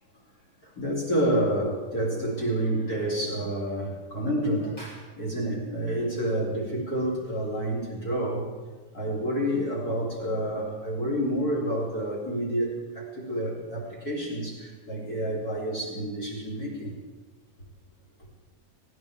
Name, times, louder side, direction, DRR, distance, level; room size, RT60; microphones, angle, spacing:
voice 1, 0.6-8.5 8.9-17.0, right 1 dB, 30° left, -4 dB, 3.2 m, -29 dB
19.0 x 16.0 x 3.5 m, 1.3 s
omnidirectional pair, 3.5 m